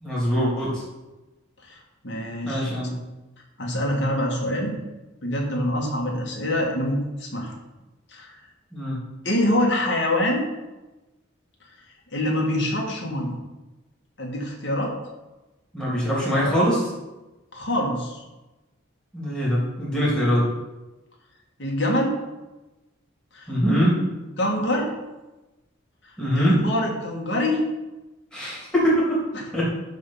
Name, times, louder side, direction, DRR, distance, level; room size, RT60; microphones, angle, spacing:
voice 1, 0.0-0.8 2.4-2.9 8.7-9.0 15.7-16.9 19.1-20.5 23.5-24.0 26.2-26.6 28.3-29.2 29.5-29.6, equal, 5° left, -8 dB, 3.1 m, -22 dB
voice 2, 2.0-2.9 3.6-4.7 5.2-7.5 8.1-8.4 9.2-10.4 12.1-13.4 14.2-14.9 17.5-18.2 21.6-22.2 23.3-23.5 24.4-24.9 26.3-27.6 29.3-29.5, left 1 dB, 60° left, -1 dB, 2.1 m, -25 dB
11.5 x 3.9 x 5.8 m, 1.1 s
head